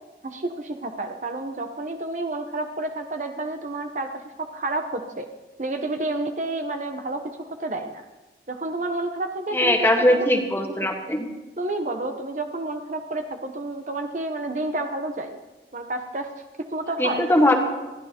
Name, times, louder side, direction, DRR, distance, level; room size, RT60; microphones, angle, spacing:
voice 1, 0.2-4.1 4.4-5.3 5.6-8.0 8.5-9.8 10.1-10.3 11.6-15.4 15.7-16.3 16.6-17.2, right 2 dB, 45° right, 5 dB, 0.8 m, -30 dB
voice 2, 9.5-11.3 17.0-17.5, left 1 dB, 15° left, 3 dB, 1.4 m, -20 dB
29.0 x 11.0 x 2.9 m, 1.1 s
head